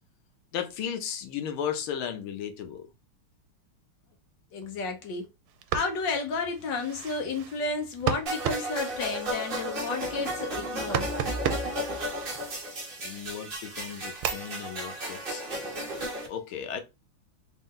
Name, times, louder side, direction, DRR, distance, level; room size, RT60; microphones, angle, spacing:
voice 1, 0.5-2.9 13.0-16.8, left 8 dB, 80° left, 1.6 m, -35 dB
voice 2, 4.5-5.2 5.7-11.1, left 3 dB, 65° left, 1.5 m, -32 dB
sound 1, 5.5-13.1 13.6-16.2, right 9 dB, 80° right, 1.4 m, -36 dB
sound 2, 8.3-16.3, equal, 35° right, 1.0 m, -34 dB
4.2 x 2.6 x 3.6 m
omnidirectional pair, 2.4 m